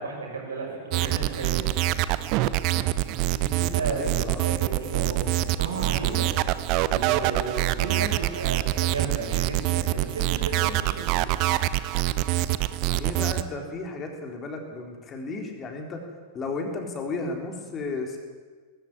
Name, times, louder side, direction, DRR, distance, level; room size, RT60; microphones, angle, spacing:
voice 1, 0.0-1.7 3.3-5.3 5.6-6.3 6.9-11.3, right 4 dB, 70° right, 0 dB, 6.6 m, -34 dB
sound 1, 0.9-13.4, right 15 dB, 40° right, 0.9 m, -25 dB
voice 2, 3.1-4.5 12.8-16.0 16.3-18.2, left 3 dB, 25° left, 3 dB, 3.9 m, -34 dB
20.0 x 15.5 x 9.9 m, 1.5 s
figure-of-eight pair, 90°, 0 cm